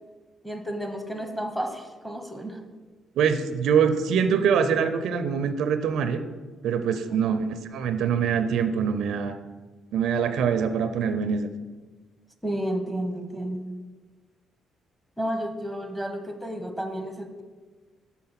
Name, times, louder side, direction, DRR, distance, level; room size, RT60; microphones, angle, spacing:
voice 1, 0.4-2.6 7.1-7.4 12.4-13.6 15.2-17.4, right 1 dB, ahead, 6 dB, 0.9 m, -32 dB
voice 2, 3.2-6.2 6.6-9.4 9.9-11.5, right 7 dB, 80° right, 10 dB, 0.4 m, -24 dB
6.6 x 4.1 x 5.7 m, 1.3 s
cardioid pair, 90°, 0 cm